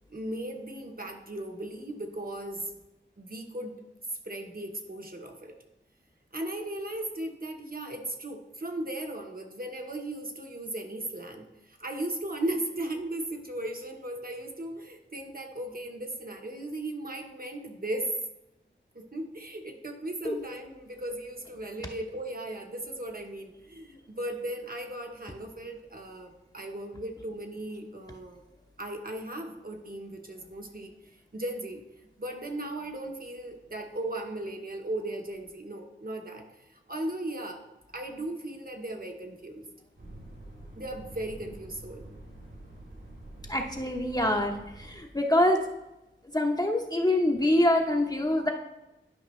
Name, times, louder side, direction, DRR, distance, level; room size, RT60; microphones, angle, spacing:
voice 1, 0.1-2.7 3.2-3.8 4.2-5.6 6.3-18.1 18.9-28.4 28.8-31.8 32.2-37.6 37.9-39.6 40.7-42.1, right 1 dB, 45° right, 3 dB, 1.1 m, -37 dB
sound 1, 40.0-45.0, right 1 dB, 75° right, 3.0 m, -47 dB
voice 2, 43.5-44.5 44.8-45.6 46.3-48.5, left 1 dB, 20° left, 1 dB, 0.7 m, -25 dB
11.0 x 5.1 x 3.1 m, 0.95 s
wide cardioid pair, 65°, 20 cm